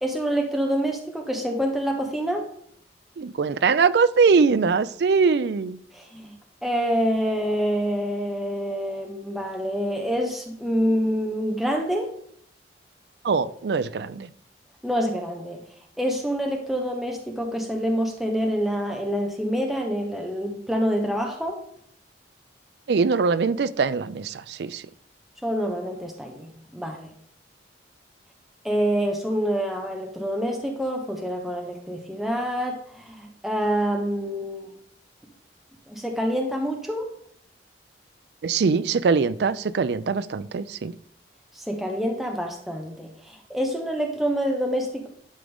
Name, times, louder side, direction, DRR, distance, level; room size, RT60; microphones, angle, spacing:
voice 1, 0.0-2.5 5.9-6.3 6.6-12.1 14.8-15.6 16.0-21.6 25.4-27.1 28.6-34.7 35.9-37.1 41.6-45.1, equal, ahead, 0.9 m, -26 dB
voice 2, 3.2-5.8 13.2-14.3 22.9-24.8 38.4-40.9, right 5 dB, 65° right, 0.4 m, -22 dB
11.0 x 3.8 x 3.5 m
head